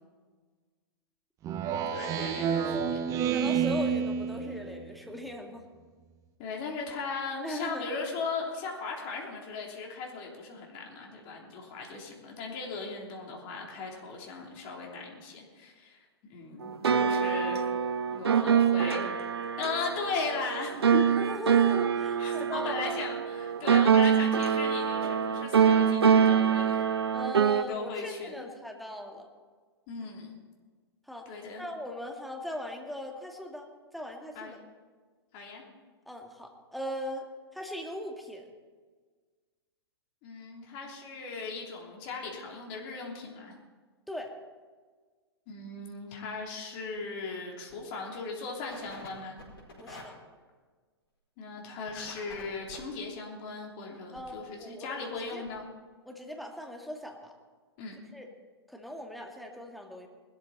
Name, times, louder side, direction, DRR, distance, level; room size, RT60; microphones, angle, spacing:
Speech synthesizer, 1.4-5.0, right 7 dB, 25° right, 1.0 m, -29 dB
voice 1, 1.6-3.0 6.4-17.7 18.1-19.1 19.6-21.2 22.2-26.8 27.7-28.5 29.9-30.4 31.2-31.6 34.3-34.5 35.3-35.6 40.2-43.5 45.5-49.4 51.4-55.7 57.8-58.0, left 4 dB, 40° left, 0 dB, 3.2 m, -37 dB
voice 2, 3.3-5.6 7.4-7.9 18.4-18.6 18.9-19.4 21.2-23.1 27.1-29.3 31.1-33.7 33.9-34.6 36.1-37.3 37.5-38.5 44.1-44.3 49.8-50.1 54.1-55.5 56.1-57.3 58.1-58.3 58.7-60.1, left 1 dB, ahead, 1 dB, 2.0 m, -39 dB
sound 1, 16.6-27.6, right 7 dB, 70° right, 0.8 m, -25 dB
sound 2, 46.9-47.2 47.6-47.7 48.1-48.2 48.7-49.1 49.4-50.0 51.9-52.8 54.2-54.3 54.9-55.0 55.2-55.3 55.5-55.6, left 2 dB, 65° left, 4.7 m, -47 dB
20.5 x 13.0 x 4.1 m, 1.5 s
figure-of-eight pair, 105°, 14 cm